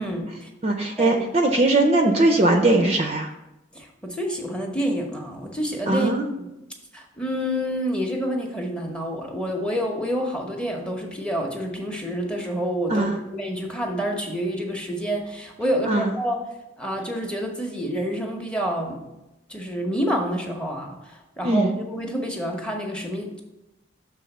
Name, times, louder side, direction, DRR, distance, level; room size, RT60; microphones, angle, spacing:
voice 1, 0.0-0.5 1.0-1.2 3.7-6.1 6.4-6.5 6.9-16.4 16.8-19.0 19.5-23.4, equal, 5° left, 2 dB, 0.8 m, -28 dB
voice 2, 0.6-3.3 5.9-6.2 12.9-13.2 15.9-16.1 21.4-21.7, right 2 dB, 30° right, 4 dB, 0.5 m, -20 dB
6.3 x 3.6 x 5.8 m, 0.94 s
head